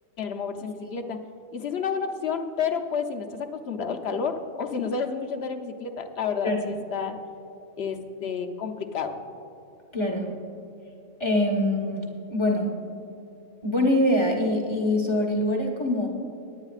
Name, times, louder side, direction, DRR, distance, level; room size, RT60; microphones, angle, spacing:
voice 1, 0.2-1.2 1.5-7.2 7.8-9.2, left 6 dB, 55° left, 6 dB, 1.0 m, -30 dB
voice 2, 9.9-10.4 11.2-12.7 13.6-16.1, left 1 dB, 20° left, -1 dB, 1.3 m, -24 dB
21.0 x 9.6 x 2.4 m, 2.7 s
omnidirectional pair, 1.4 m